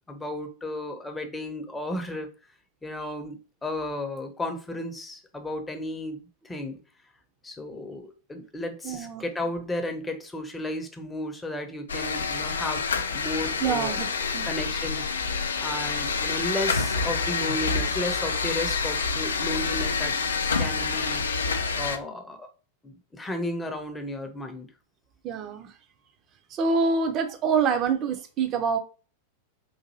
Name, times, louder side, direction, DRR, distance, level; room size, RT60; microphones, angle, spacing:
voice 1, 0.1-2.3 2.8-6.8 7.4-12.9 13.1-14.0 14.2-20.1 20.6-21.3 21.7-22.5 22.8-24.7, left 1 dB, 10° left, 5 dB, 0.6 m, -34 dB
voice 2, 8.8-9.2 13.6-14.1 14.3-14.5 25.2-25.7 26.5-28.8, right 5 dB, 35° right, 6 dB, 0.6 m, -26 dB
sound 1, 11.9-22.0, left 4 dB, 70° left, 0.3 m, -27 dB
3.9 x 2.6 x 2.7 m, 0.35 s
figure-of-eight pair, 90°, 0 cm